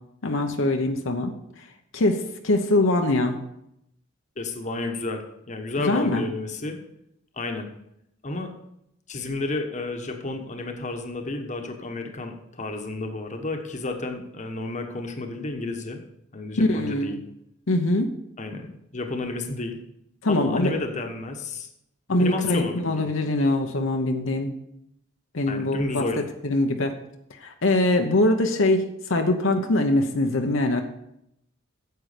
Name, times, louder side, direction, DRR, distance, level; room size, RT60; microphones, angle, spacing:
voice 1, 0.2-1.3 1.9-3.4 5.9-6.2 16.6-17.2 17.7-18.1 20.2-20.7 22.1-24.5 25.3-26.0 26.4-26.9 27.4-30.8, left 2 dB, 75° left, 4 dB, 0.9 m, -23 dB
voice 2, 4.4-6.8 7.4-7.7 8.2-8.5 9.1-16.0 16.3-17.2 18.4-19.8 20.3-21.7 22.2-23.1 25.5-26.2, left 2 dB, 35° left, 4 dB, 1.1 m, -31 dB
9.3 x 7.8 x 5.0 m, 0.79 s
head